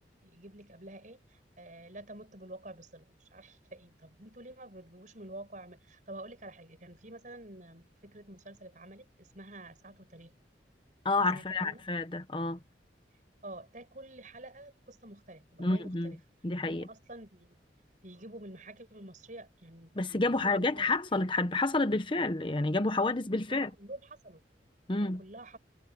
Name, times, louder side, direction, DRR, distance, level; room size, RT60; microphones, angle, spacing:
voice 1, 0.2-10.4 11.3-11.8 13.4-16.2 16.6-17.6 18.0-21.0 23.5-24.4 24.9-25.6, right 1 dB, 45° right, 7.7 m, -49 dB
voice 2, 11.0-12.6 15.6-16.1 16.4-16.9 20.0-23.7 24.9-25.2, left 2 dB, 30° left, 0.9 m, -29 dB
head